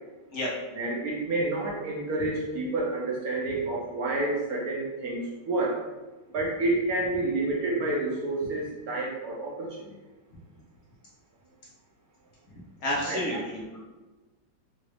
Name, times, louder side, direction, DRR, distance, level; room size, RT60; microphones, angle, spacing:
voice 1, 0.7-5.7 6.3-10.0 13.1-13.2, right 2 dB, 65° right, -4 dB, 1.0 m, -29 dB
voice 2, 12.8-13.8, left 1 dB, 60° left, -5 dB, 1.2 m, -30 dB
3.9 x 2.3 x 3.2 m, 1.2 s
omnidirectional pair, 2.0 m